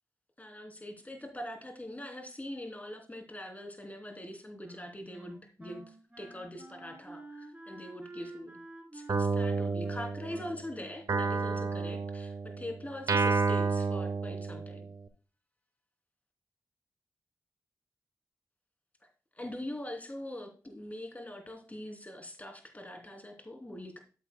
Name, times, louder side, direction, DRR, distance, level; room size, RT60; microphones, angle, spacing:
voice 1, 0.4-8.6 8.9-14.9 19.0-19.1 19.3-24.0, left 1 dB, 25° left, 4 dB, 3.1 m, -43 dB
Wind instrument woodwind instrument, 4.6-12.1, right 2 dB, 20° right, 3.6 m, -50 dB
Guitar, 9.1-10.6 11.1-15.0, right 4 dB, 80° right, 1.0 m, -30 dB
12.5 x 8.1 x 2.2 m, 0.36 s
cardioid pair, 55°, 6 cm